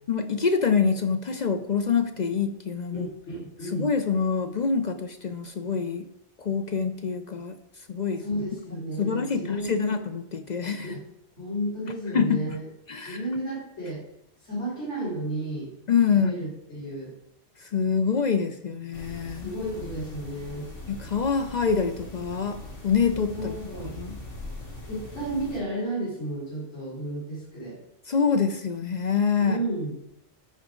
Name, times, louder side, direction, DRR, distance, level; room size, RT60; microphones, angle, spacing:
voice 1, 0.1-3.1 3.7-6.1 6.4-7.6 7.9-8.2 9.0-11.0 12.1-12.6 12.9-13.2 15.9-16.5 17.6-19.5 20.9-23.6 23.8-24.2 28.1-29.6, left 6 dB, 50° left, 8 dB, 0.5 m, -26 dB
voice 2, 2.9-3.9 8.2-9.9 10.8-11.0 11.4-12.6 13.1-14.0 14.4-15.7 16.1-17.1 19.3-20.7 23.3-23.9 24.8-27.8 29.4-30.0, right 1 dB, 70° left, -7 dB, 4.2 m, -32 dB
sound 1, 18.9-25.6, left 1 dB, 85° left, 2.6 m, -41 dB
13.5 x 4.9 x 3.7 m, 0.78 s
omnidirectional pair, 1.2 m